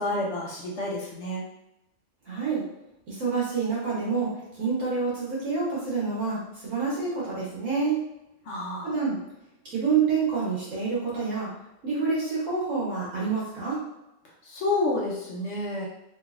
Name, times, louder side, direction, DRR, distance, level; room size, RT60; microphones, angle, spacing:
voice 1, 0.0-1.4 8.5-8.9 14.4-15.9, left 2 dB, 60° left, -3 dB, 1.0 m, -29 dB
voice 2, 2.2-2.6 3.1-8.0 8.8-9.2 9.6-11.5 11.8-13.8, right 5 dB, 70° right, -7 dB, 1.4 m, -27 dB
3.2 x 3.1 x 2.4 m, 0.89 s
omnidirectional pair, 1.5 m